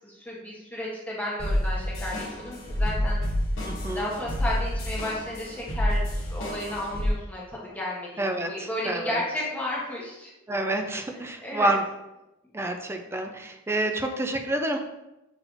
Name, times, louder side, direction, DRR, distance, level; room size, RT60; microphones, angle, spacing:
voice 1, 0.0-3.2 3.9-10.3 11.4-11.7, left 1 dB, 10° left, -5 dB, 0.9 m, -33 dB
sound 1, 1.4-7.1, equal, 65° left, 1.1 m, -28 dB
voice 2, 3.6-4.1 8.2-9.2 10.5-11.8 12.5-14.8, right 1 dB, 10° right, 5 dB, 0.3 m, -28 dB
6.4 x 3.2 x 2.5 m, 0.93 s
head